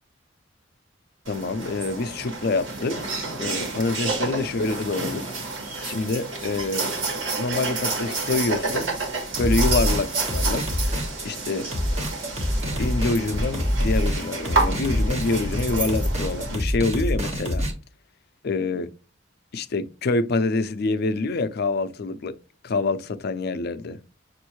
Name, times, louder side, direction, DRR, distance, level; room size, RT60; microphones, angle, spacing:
sound 1, 1.2-16.5, right 3 dB, 90° right, 1.5 m, -29 dB
voice 1, 1.3-3.0 3.4-5.2 5.8-6.9 7.4-8.9 9.4-10.7 11.2-11.7 12.8-17.7 18.4-18.9 19.5-22.4 22.6-24.0, left 3 dB, 55° left, 0.5 m, -26 dB
sound 2, 9.4-17.7, equal, 35° right, 1.3 m, -26 dB
6.2 x 2.6 x 3.0 m
head